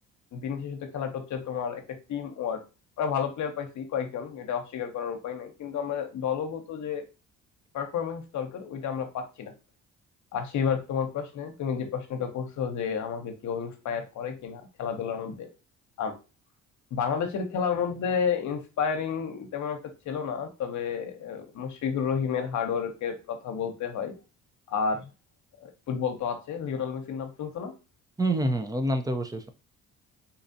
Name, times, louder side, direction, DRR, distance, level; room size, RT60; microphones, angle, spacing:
voice 1, 0.3-1.8 2.1-2.6 3.0-7.0 7.7-9.5 10.3-15.5 16.0-16.1 16.9-19.8 20.0-24.1 24.7-25.1 25.6-27.7, left 7 dB, 70° left, 6 dB, 0.9 m, -31 dB
voice 2, 28.2-29.5, right 1 dB, 10° right, 7 dB, 0.6 m, -27 dB
4.1 x 2.4 x 2.7 m, 0.30 s
cardioid pair, 75°, 31 cm